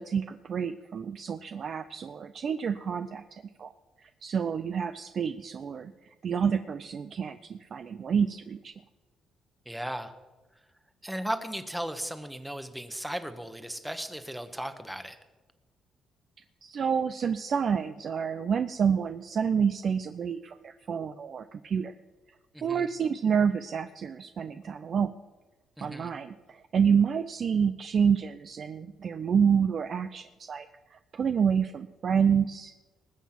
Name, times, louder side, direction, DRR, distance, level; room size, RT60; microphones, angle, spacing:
voice 1, 0.0-3.7 4.0-5.9 6.2-8.7 16.6-21.9 22.6-25.1 25.8-32.7, right 7 dB, 55° right, 9 dB, 0.5 m, -28 dB
voice 2, 9.6-10.1 11.0-15.2 22.5-22.9 25.8-26.1, equal, 5° right, 9 dB, 1.2 m, -36 dB
20.0 x 7.2 x 6.0 m, 1.2 s
cardioid pair, 90°, 0 cm